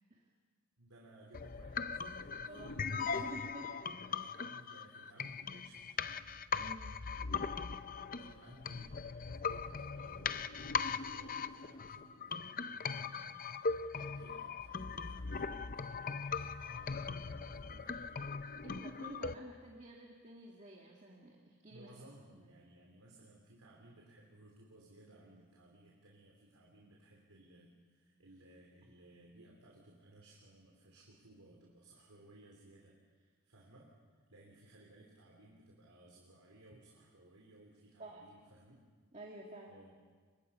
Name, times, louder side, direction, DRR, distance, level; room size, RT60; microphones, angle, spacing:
voice 1, 0.8-2.7 3.1-3.3 4.0-6.3 8.2-18.1 21.7-33.9 34.3-38.8 39.7-39.9, right 1 dB, 85° right, -2 dB, 3.4 m, -60 dB
sound 1, 1.3-19.3, left 5 dB, 40° left, 0.6 m, -40 dB
voice 2, 2.5-3.7 6.6-6.9 8.0-8.4 18.6-21.9 22.4-22.5 28.8-28.9 38.0-38.2 39.1-39.8, right 2 dB, 30° right, -1 dB, 2.0 m, -51 dB
29.0 x 24.0 x 5.5 m, 1.5 s
head